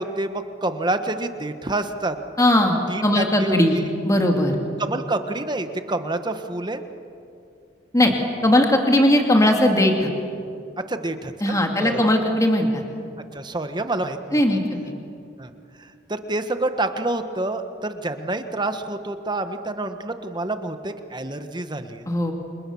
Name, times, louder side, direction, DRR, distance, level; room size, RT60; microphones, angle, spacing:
voice 1, 0.0-2.2 2.9-3.9 4.8-6.8 10.9-12.0 13.3-14.4 15.4-15.5 15.8-22.1, right 2 dB, 25° right, 8 dB, 1.3 m, -28 dB
voice 2, 2.4-3.8 4.0-4.6 7.9-8.1 8.4-10.1 11.4-12.8 14.3-14.9 22.1-22.3, left 1 dB, 15° left, 2 dB, 2.3 m, -19 dB
29.5 x 27.5 x 7.1 m, 2.5 s
head